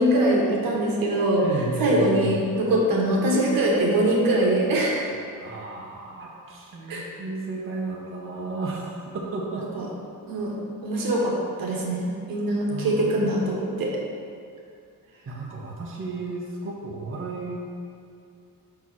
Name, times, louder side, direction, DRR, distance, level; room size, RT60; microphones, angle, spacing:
voice 1, 0.0-1.4 1.8-5.1 6.9-7.1 9.7-9.8 10.3-10.5 10.8-13.9, right 1 dB, 80° right, -2 dB, 1.3 m, -23 dB
voice 2, 1.4-2.4 5.3-9.8 12.7-13.7 15.2-17.6, right 3 dB, 40° right, -3 dB, 1.0 m, -33 dB
5.4 x 4.6 x 6.1 m, 2.4 s
wide cardioid pair, 160°, 34 cm